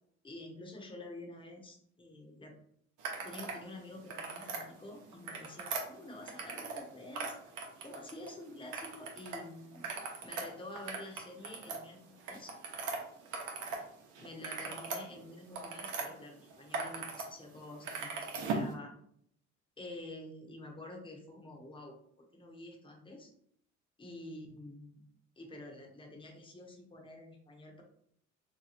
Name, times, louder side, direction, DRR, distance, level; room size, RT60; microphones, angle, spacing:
voice 1, 0.2-2.5 3.2-7.3 7.8-12.5 14.2-18.9 19.8-22.0 22.3-23.3 24.0-25.0 25.4-27.8, left 2 dB, 15° left, 1 dB, 0.8 m, -48 dB
sound 1, 3.0-3.6 4.0-4.6 5.1-6.9 7.1-8.3 8.7-9.4 9.7-13.8 14.1-16.1 16.5-17.3 17.5-18.7, right 4 dB, 85° right, 0.8 m, -39 dB
2.9 x 2.2 x 4.0 m, 0.66 s
cardioid pair, 90°, 30 cm